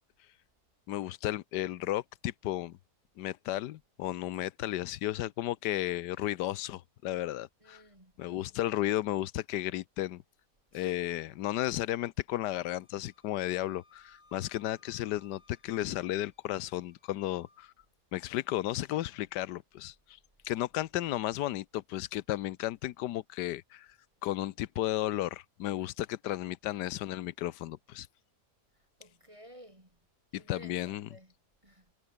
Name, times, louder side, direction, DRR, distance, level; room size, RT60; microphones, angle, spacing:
voice 1, 0.9-2.8 3.2-7.8 8.2-10.2 10.7-17.7 18.1-19.9 20.4-23.9 24.2-28.1 30.3-31.1, left 14 dB, 90° left, 1.3 m, -34 dB
voice 2, 7.6-8.1 10.7-11.0 26.7-26.9 28.7-30.0 30.3-31.3 31.6-31.9, equal, 20° right, 4.0 m, -54 dB
Wind instrument woodwind instrument, 12.5-17.7, left 2 dB, 50° left, 4.9 m, -66 dB
omnidirectional pair, 1.8 m